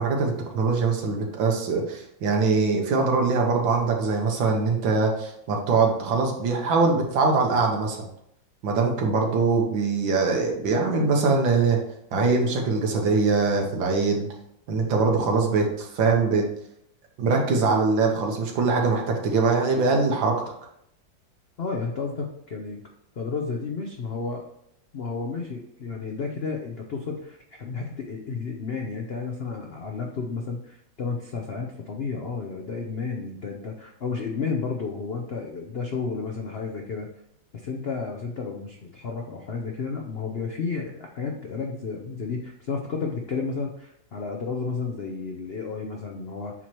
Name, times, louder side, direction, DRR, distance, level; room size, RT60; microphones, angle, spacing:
voice 1, 0.0-8.1 8.6-11.8 12.1-14.3 14.7-16.4 17.2-20.4, right 4 dB, 85° right, 1 dB, 1.8 m, -22 dB
voice 2, 21.6-22.8 23.2-24.4 24.9-37.1 37.5-46.5, left 4 dB, 90° left, 2 dB, 0.5 m, -32 dB
8.1 x 3.1 x 4.4 m, 0.74 s
omnidirectional pair, 2.0 m